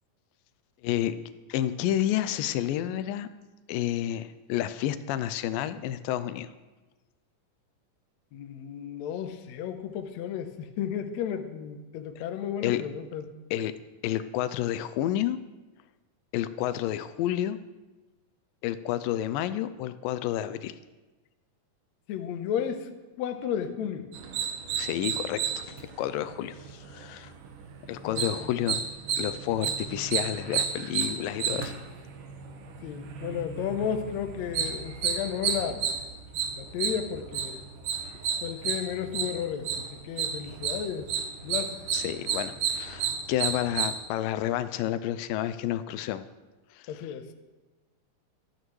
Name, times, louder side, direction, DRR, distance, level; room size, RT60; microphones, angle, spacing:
voice 1, 0.8-1.1 1.5-3.3 3.7-6.5 12.6-12.8 13.5-13.7 14.0-15.4 16.3-17.6 18.6-20.8 24.8-27.3 27.9-28.8 29.2-31.7 38.0-38.2 41.9-46.2 46.7-47.0, left 12 dB, 90° left, 13 dB, 2.3 m, -30 dB
voice 2, 8.3-13.3 22.1-22.9 23.2-24.1 28.0-28.5 32.8-35.9 36.6-37.6 38.4-41.1 41.4-41.8 46.9-47.3, left 8 dB, 70° left, 7 dB, 1.8 m, -33 dB
sound 1, 24.1-43.9, right 7 dB, 75° right, 2.7 m, -32 dB
26.5 x 9.0 x 3.2 m, 1.2 s
omnidirectional pair, 3.9 m